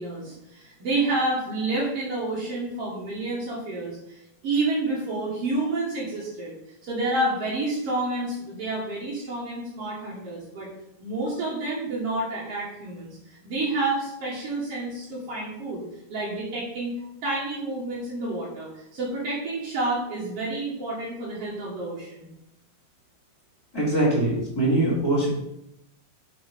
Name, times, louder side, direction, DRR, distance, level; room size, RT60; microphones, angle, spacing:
voice 1, 0.0-6.5 6.8-10.7 11.0-15.8 16.1-16.9 17.2-22.3, right 2 dB, 60° right, -6 dB, 1.6 m, -29 dB
voice 2, 23.7-25.3, right 1 dB, 10° left, -7 dB, 1.8 m, -22 dB
6.2 x 5.0 x 5.2 m, 0.82 s
omnidirectional pair, 4.8 m